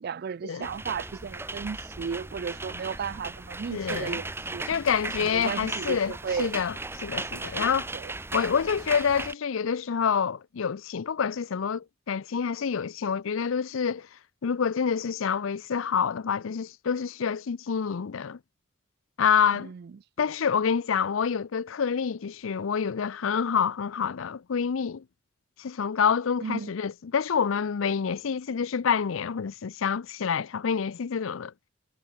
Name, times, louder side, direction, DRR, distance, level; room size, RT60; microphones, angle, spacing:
voice 1, 0.0-4.6 5.2-6.6 7.3-8.1 19.6-19.9 20.2-20.3 26.4-26.7, right 6 dB, 50° right, 0.3 m, -35 dB
sound 1, 0.6-9.3, right 2 dB, 10° right, 1.0 m, -36 dB
voice 2, 3.7-4.2 4.7-6.7 7.0-7.9 8.3-14.1 14.4-18.4 19.2-19.7 20.2-25.0 25.6-31.5, left 6 dB, 75° left, 0.5 m, -27 dB
head